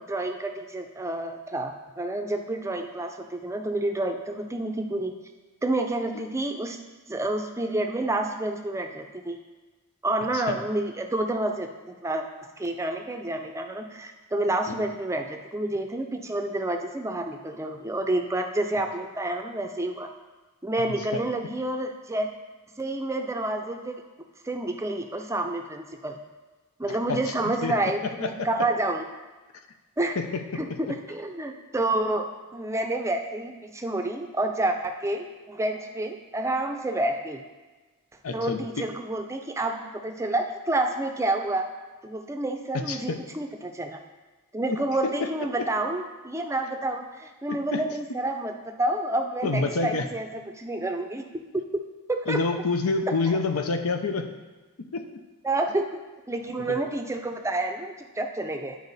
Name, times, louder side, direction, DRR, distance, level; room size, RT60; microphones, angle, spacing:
voice 1, 0.0-5.1 5.6-6.8 7.1-9.4 10.0-20.1 20.6-22.3 22.8-24.0 24.4-26.2 26.8-29.0 30.0-30.1 30.6-32.2 32.5-37.4 38.3-39.8 40.0-41.7 42.0-44.0 44.5-51.2 51.5-51.6 52.3-52.4 55.4-56.0 56.3-58.8, right 2 dB, 15° right, 4 dB, 0.5 m, -29 dB
voice 2, 26.9-27.7 28.2-28.5 30.2-30.6 38.2-38.6 42.7-43.2 44.7-45.3 47.5-47.8 49.4-50.1 52.3-54.3 54.8-55.1 56.6-56.8, left 3 dB, 80° left, 7 dB, 0.7 m, -28 dB
10.5 x 4.7 x 4.0 m, 1.3 s
head